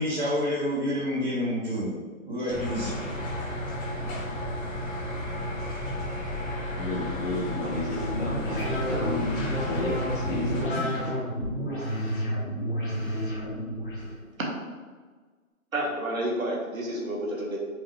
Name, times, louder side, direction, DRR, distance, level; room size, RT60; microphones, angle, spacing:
voice 1, 0.0-1.9 2.2-3.0, equal, 35° right, -15 dB, 1.4 m, -28 dB
sound 1, 2.5-10.6, left 1 dB, 5° right, 0.8 m, -33 dB
voice 2, 6.7-9.4 9.7-11.1, left 2 dB, 60° left, -6 dB, 1.5 m, -32 dB
sound 2, 7.8-14.1, equal, 35° left, 1.3 m, -30 dB
voice 3, 15.7-17.6, right 1 dB, 70° right, -2 dB, 1.3 m, -30 dB
4.9 x 2.7 x 3.1 m, 1.4 s
figure-of-eight pair, 170°, 42 cm